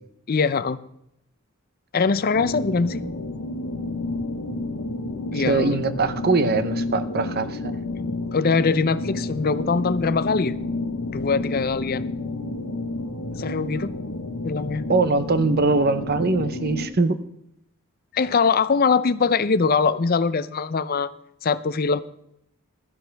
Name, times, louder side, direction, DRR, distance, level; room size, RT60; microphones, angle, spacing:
voice 1, 0.3-0.8 1.9-3.0 5.3-5.8 7.9-10.5 11.1-12.1 13.4-13.9 14.4-14.8 18.1-21.1 21.4-22.0, left 5 dB, 45° left, 0.5 m, -22 dB
sound 1, 2.3-16.9, left 2 dB, 70° left, 1.0 m, -30 dB
voice 2, 5.3-7.8 14.9-17.2, right 3 dB, 45° right, 0.8 m, -22 dB
16.0 x 12.5 x 3.4 m
head